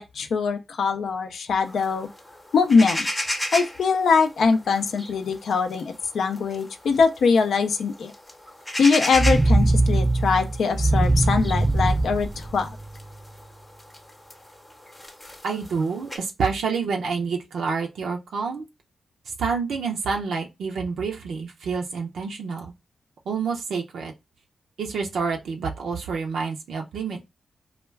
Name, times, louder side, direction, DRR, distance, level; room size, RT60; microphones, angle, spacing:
voice 1, 0.0-2.1 2.5-3.0 3.5-8.1 8.8-12.7, left 5 dB, 75° left, 0.3 m, -22 dB
sound 1, 1.6-16.2, left 1 dB, 15° left, 0.7 m, -35 dB
sound 2, 9.1-13.2, right 2 dB, 20° right, 0.4 m, -21 dB
voice 2, 15.4-18.7 19.3-22.7 23.3-24.1 24.8-27.2, right 5 dB, 85° right, 0.4 m, -28 dB
2.2 x 2.1 x 3.2 m
cardioid pair, 60°, 0 cm